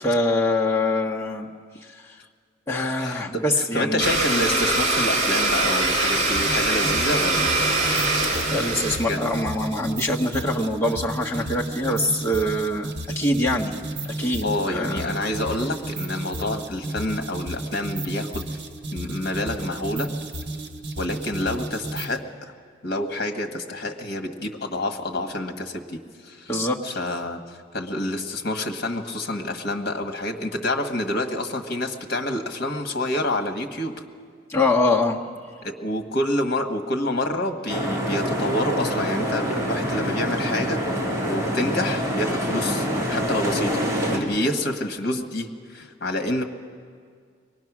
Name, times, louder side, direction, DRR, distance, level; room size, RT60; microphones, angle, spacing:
voice 1, 0.0-1.5 1.9-2.2 2.7-4.0 8.5-13.8 14.1-15.1 26.5-26.8 34.5-35.2, left 1 dB, 15° left, -2 dB, 1.3 m, -24 dB
voice 2, 3.0-7.5 9.1-9.3 14.4-18.6 18.9-20.1 21.0-22.5 22.8-26.5 26.8-27.4 27.7-34.0 35.6-40.8 41.3-43.8 44.1-46.4, left 1 dB, 55° left, 5 dB, 1.4 m, -28 dB
Domestic sounds home sounds, 4.0-9.0, right 2 dB, 40° right, 2.7 m, -22 dB
sound 1, 6.4-22.2, right 1 dB, 65° right, 1.4 m, -33 dB
sound 2, 37.7-44.2, equal, 15° right, 3.1 m, -26 dB
23.0 x 19.5 x 6.1 m, 2.1 s
head